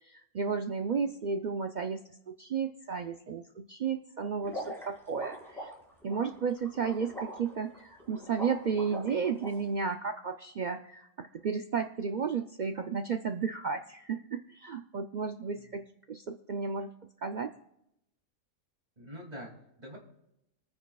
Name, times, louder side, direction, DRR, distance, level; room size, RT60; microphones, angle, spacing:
voice 1, 0.0-5.7 6.0-16.9 17.2-17.5, right 6 dB, 65° right, 6 dB, 0.4 m, -33 dB
sound 1, 4.4-9.5, equal, ahead, 4.9 m, -42 dB
voice 2, 19.0-20.0, equal, 30° right, -1 dB, 2.6 m, -45 dB
26.0 x 9.6 x 2.3 m, 0.83 s
omnidirectional pair, 1.4 m